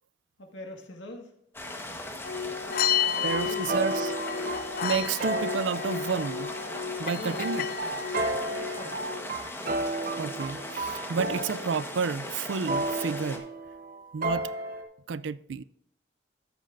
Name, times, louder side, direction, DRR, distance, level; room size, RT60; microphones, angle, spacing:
voice 1, 0.4-1.3 3.0-3.6 7.2-7.7 8.5-9.1, left 1 dB, 80° left, 1.8 m, -43 dB
sound 1, 1.5-13.4, left 1 dB, 15° left, 1.2 m, -39 dB
sound 2, 2.2-9.2, left 8 dB, 50° left, 0.4 m, -32 dB
sound 3, 3.0-14.8, right 2 dB, 50° right, 1.1 m, -34 dB
voice 2, 3.2-4.2 4.4-6.5 7.0-7.6 10.2-13.5 14.1-14.5 15.1-15.6, right 5 dB, 80° right, 0.4 m, -31 dB
13.5 x 8.4 x 2.6 m
head